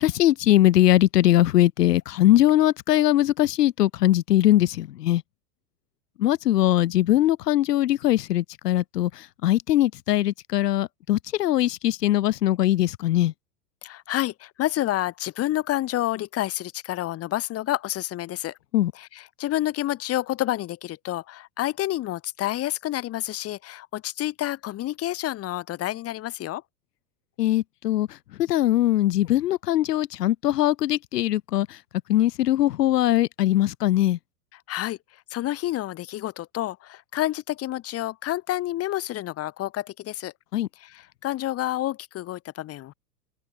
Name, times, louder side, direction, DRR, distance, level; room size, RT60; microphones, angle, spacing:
voice 1, 0.0-5.2 6.2-13.3 18.7-18.9 27.4-31.8 32.1-34.2 40.5-40.7, left 14 dB, 90° left, 2.5 m, -21 dB
voice 2, 13.8-18.6 19.0-26.6 34.7-40.3 40.8-42.9, left 14 dB, 30° left, 3.7 m, -29 dB
supercardioid pair, 150°, 46 cm